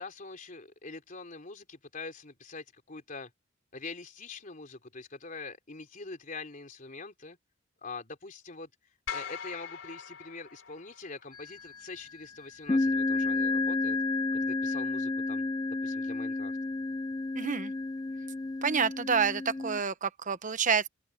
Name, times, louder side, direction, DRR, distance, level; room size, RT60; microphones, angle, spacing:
voice 1, 0.0-3.3 3.7-7.4 7.8-8.7 9.1-14.0 14.3-16.5, left 3 dB, 45° left, 3.6 m, -44 dB
sound 1, 9.1-11.4, left 7 dB, 70° left, 4.8 m, -41 dB
sound 2, 11.3-11.8 12.7-19.8, left 3 dB, 20° left, 0.4 m, -31 dB
voice 2, 17.3-17.7 18.6-20.9, right 6 dB, 40° right, 1.0 m, -28 dB
open air
head